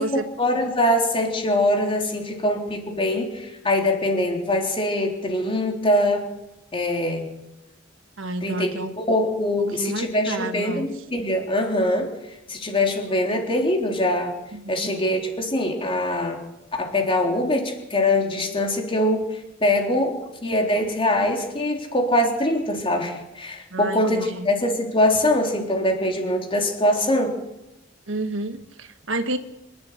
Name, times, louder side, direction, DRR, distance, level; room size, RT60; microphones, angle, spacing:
voice 1, 0.0-6.3 6.7-7.3 8.4-12.1 12.5-14.3 14.7-16.4 16.8-27.3, left 1 dB, 30° left, 2 dB, 3.8 m, -23 dB
voice 2, 8.2-8.9 9.8-10.9 14.5-14.9 23.7-24.5 28.1-29.4, right 2 dB, 70° right, 8 dB, 1.5 m, -30 dB
26.5 x 11.0 x 9.5 m, 0.95 s
head